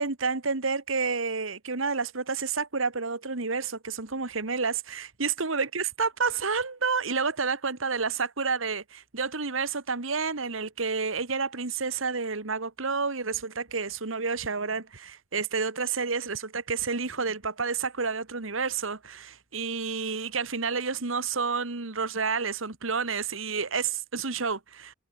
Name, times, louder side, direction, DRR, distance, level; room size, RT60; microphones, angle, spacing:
voice 1, 0.0-24.9, right 5 dB, 80° right, 1.7 m, -30 dB
head